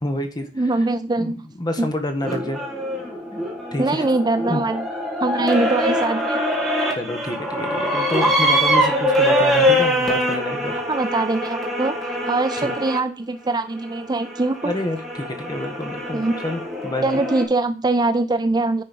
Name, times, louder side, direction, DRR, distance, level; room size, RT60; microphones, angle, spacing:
voice 1, 0.0-0.7 1.2-2.6 3.7-4.0 4.5-4.6 7.0-10.8 12.6-12.7 14.6-17.2, left 1 dB, 25° left, 6 dB, 1.5 m, -28 dB
voice 2, 0.6-1.5 1.8-1.9 3.8-4.9 5.2-6.4 10.9-14.7 16.1-16.4 17.0-18.8, right 2 dB, 25° right, 11 dB, 0.5 m, -22 dB
sound 1, 2.2-13.0 13.8-17.4, equal, ahead, 2.5 m, -23 dB
10.0 x 4.5 x 5.3 m, 0.35 s
head